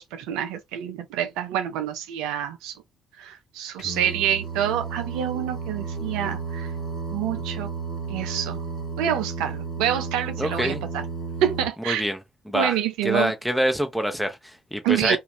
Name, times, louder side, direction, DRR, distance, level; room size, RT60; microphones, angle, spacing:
voice 1, 0.0-2.8 3.2-6.7 7.1-7.7 8.1-8.6 9.0-11.0 11.4-12.0 12.5-13.3 14.8-15.2, right 10 dB, 70° right, 0.3 m, -27 dB
Singing, 3.8-11.7, right 4 dB, 55° left, 1.0 m, -33 dB
voice 2, 10.4-10.8 11.9-12.2 12.5-12.8 13.0-15.2, equal, ahead, 0.9 m, -25 dB
2.4 x 2.3 x 3.2 m
hypercardioid pair, 50°, 0 cm